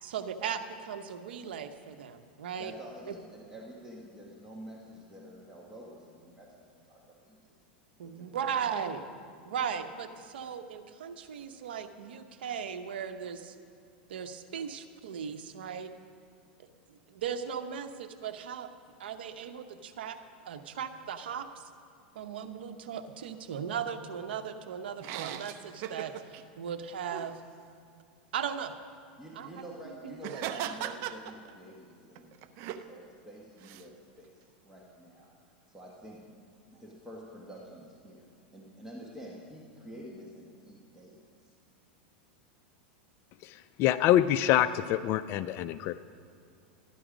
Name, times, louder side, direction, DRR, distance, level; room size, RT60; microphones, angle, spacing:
voice 1, 0.0-2.7 3.1-3.2 8.0-9.0 9.4-13.5 14.1-15.9 17.1-18.7 19.0-20.2 20.4-21.6 22.1-27.4 28.3-28.7 29.3-29.5 29.8-30.4, right 7 dB, 80° right, 8 dB, 0.8 m, -37 dB
voice 2, 2.6-7.5 8.0-8.7 29.2-35.3 35.7-38.3 38.5-41.5, equal, 10° right, -3 dB, 1.4 m, -48 dB
sound 1, 25.0-26.4 27.1-27.3 30.2-31.7 32.1-32.8 33.6-33.8, right 10 dB, 50° right, 0.6 m, -38 dB
voice 3, 43.4-46.0, left 12 dB, 45° left, 13 dB, 0.3 m, -26 dB
13.0 x 10.0 x 5.1 m, 2.4 s
hypercardioid pair, 115°, 5 cm